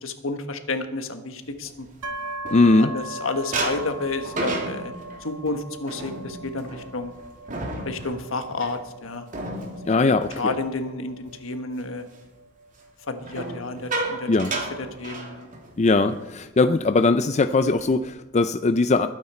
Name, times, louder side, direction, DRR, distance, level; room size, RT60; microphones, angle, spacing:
voice 1, 0.0-1.9 2.6-4.9 5.2-7.1 7.8-9.3 9.6-12.1 13.1-14.6 15.0-15.5, left 3 dB, 70° left, 7 dB, 1.4 m, -31 dB
sound 1, 1.6-3.1 3.5-11.3 11.7-12.0 13.2-15.8 16.1-16.3 16.6-16.9 17.4-18.0, right 2 dB, 40° right, 2.7 m, -33 dB
sound 2, 2.0-15.7, right 1 dB, 80° right, 1.3 m, -40 dB
voice 2, 2.5-2.9 9.9-10.5 14.3-14.5 15.8-19.1, left 3 dB, 35° left, 10 dB, 0.4 m, -20 dB
21.0 x 9.6 x 4.4 m, 1.1 s
head